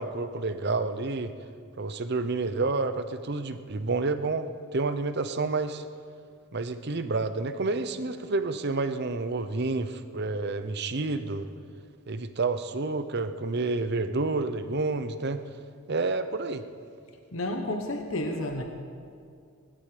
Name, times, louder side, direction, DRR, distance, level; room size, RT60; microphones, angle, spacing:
voice 1, 0.0-1.3 1.8-5.8 6.5-11.5 12.1-15.4 15.9-16.6, right 3 dB, 50° right, 10 dB, 0.7 m, -29 dB
voice 2, 17.3-18.6, left 1 dB, 65° left, 4 dB, 1.2 m, -31 dB
19.5 x 12.5 x 5.2 m, 2.2 s
head